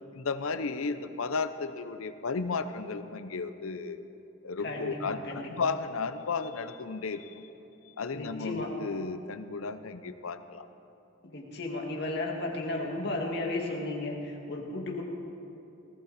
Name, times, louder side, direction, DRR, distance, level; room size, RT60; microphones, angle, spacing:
voice 1, 0.1-4.0 4.4-7.5 8.0-10.7, left 4 dB, 80° left, 11 dB, 0.7 m, -34 dB
voice 2, 4.6-5.5 8.1-8.7 11.2-15.0, left 2 dB, 50° left, -1 dB, 2.1 m, -34 dB
19.0 x 14.5 x 4.1 m, 2.9 s
head